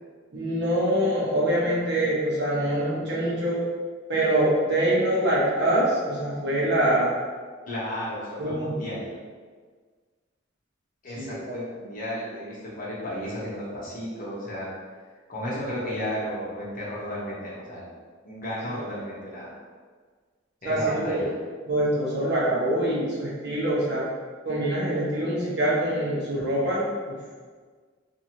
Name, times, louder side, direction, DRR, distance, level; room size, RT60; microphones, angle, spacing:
voice 1, 0.3-3.6 4.1-7.1 8.4-8.8 11.1-11.6 20.6-21.2 21.6-24.0 24.4-27.2, right 1 dB, 60° right, -7 dB, 1.0 m, -24 dB
voice 2, 7.7-9.1 11.0-14.7 15.3-17.9 18.2-19.6 20.6-21.3, equal, 45° left, -7 dB, 0.8 m, -33 dB
2.7 x 2.6 x 2.9 m, 1.6 s
head